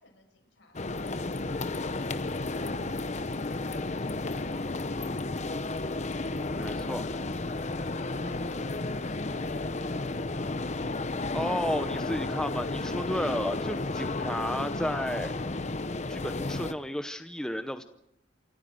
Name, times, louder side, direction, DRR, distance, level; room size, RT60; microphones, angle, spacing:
voice 1, 0.0-3.2 8.1-10.7, left 2 dB, 70° left, 3 dB, 6.9 m, -54 dB
sound 1, 0.7-16.7, left 2 dB, 40° left, 0.9 m, -32 dB
voice 2, 6.6-7.0 11.3-15.3 16.1-17.8, equal, 5° left, 9 dB, 0.8 m, -32 dB
28.0 x 13.5 x 7.8 m, 0.78 s
head